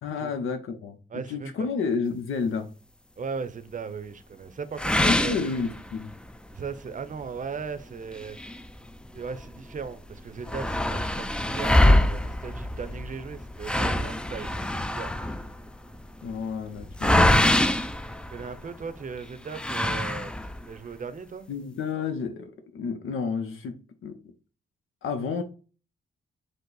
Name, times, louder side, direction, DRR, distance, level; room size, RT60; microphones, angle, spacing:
voice 1, 0.0-1.0 1.3-2.7 5.0-6.1 16.2-17.4 21.5-24.1 25.0-25.4, left 5 dB, 85° left, 0.6 m, -31 dB
voice 2, 1.1-1.7 3.2-5.6 6.5-8.5 9.1-15.2 18.3-20.3 20.7-21.5, right 5 dB, 40° right, 0.6 m, -37 dB
sound 1, 4.8-6.2 6.7-6.8 7.2-7.3 8.1-9.4 9.8-9.9 10.1-18.8 19.5-20.7, left 1 dB, 5° left, 0.3 m, -24 dB
5.3 x 2.0 x 3.8 m
cardioid pair, 80°, 21 cm